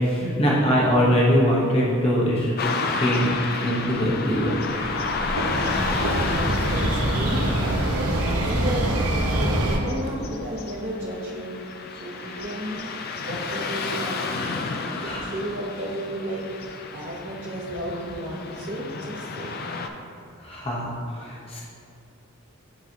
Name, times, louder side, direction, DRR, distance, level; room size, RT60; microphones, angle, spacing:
voice 1, 0.0-2.5 3.0-4.6 15.0-15.2 20.4-21.6, equal, 25° left, -6 dB, 1.0 m, -22 dB
Car passing by / Traffic noise roadway noise, 2.6-19.9, left 4 dB, 45° left, 0.4 m, -32 dB
sound 1, 4.6-9.8, right 1 dB, 85° right, 1.0 m, -25 dB
voice 2, 6.2-9.0 9.6-11.5 12.0-12.9 13.2-14.2 14.7-16.4 16.9-19.5, right 1 dB, 40° right, -10 dB, 1.0 m, -33 dB
10.5 x 3.9 x 2.9 m, 2.5 s
head